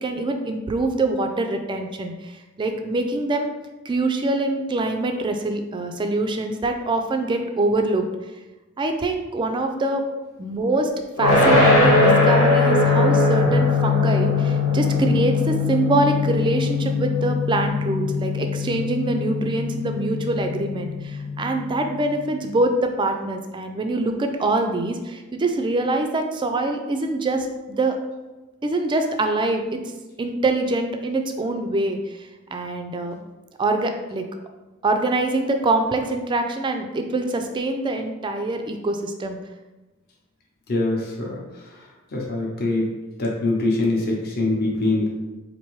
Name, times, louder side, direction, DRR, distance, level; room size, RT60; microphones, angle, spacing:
voice 1, 0.0-3.5 3.9-8.1 8.8-10.0 10.4-10.9 11.2-28.0 28.6-29.8 30.2-33.1 33.6-34.2 34.8-39.4, right 2 dB, 20° right, 5 dB, 0.3 m, -24 dB
sound 1, 11.2-22.2, left 3 dB, 80° left, 1.3 m, -20 dB
voice 2, 40.7-41.4 42.1-42.9 43.2-45.1, left 2 dB, 45° left, -2 dB, 0.7 m, -23 dB
4.5 x 2.6 x 3.1 m, 1.1 s
head